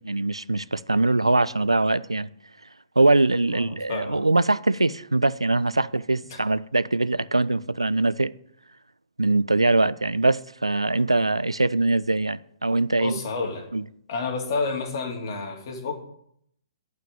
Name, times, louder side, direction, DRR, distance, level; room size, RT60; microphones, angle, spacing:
voice 1, 0.0-2.3 3.0-8.3 9.2-13.2 13.7-13.8, right 2 dB, 80° right, 0.5 m, -22 dB
voice 2, 3.5-4.2 6.3-6.4 13.0-13.7 14.1-16.1, left 4 dB, 45° left, 2.8 m, -30 dB
11.5 x 5.9 x 8.6 m
figure-of-eight pair, 120°, 3 cm